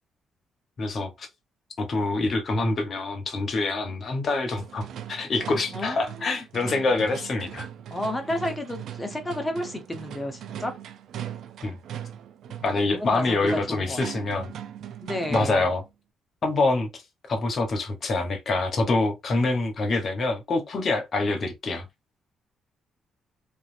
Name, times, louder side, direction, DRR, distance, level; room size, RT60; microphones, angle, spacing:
voice 1, 0.8-1.3 1.8-7.7 11.6-11.8 12.6-14.5 15.3-15.8 16.4-16.9 17.3-21.8, left 3 dB, 50° left, 1.1 m, -26 dB
sound 1, 4.6-15.8, right 10 dB, 75° right, 0.4 m, -39 dB
voice 2, 5.7-6.1 7.9-10.7 12.9-14.0 15.0-15.7, left 1 dB, 15° left, 1.0 m, -31 dB
3.0 x 2.6 x 2.6 m
cardioid pair, 90°, 0 cm